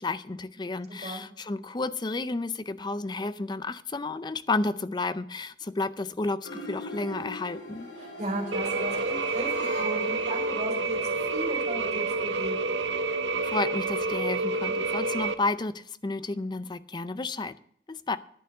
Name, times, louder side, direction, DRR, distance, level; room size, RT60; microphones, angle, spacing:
voice 1, 0.0-7.9 13.4-17.5 17.9-18.2, left 3 dB, 25° left, 14 dB, 0.5 m, -31 dB
sound 1, 6.4-11.1, left 2 dB, 85° left, 3.5 m, -40 dB
voice 2, 8.0-11.0 11.3-12.7, right 1 dB, 40° right, 0 dB, 4.4 m, -35 dB
sound 2, 8.5-15.3, right 3 dB, 85° right, 0.8 m, -29 dB
10.5 x 9.2 x 6.6 m, 0.64 s
head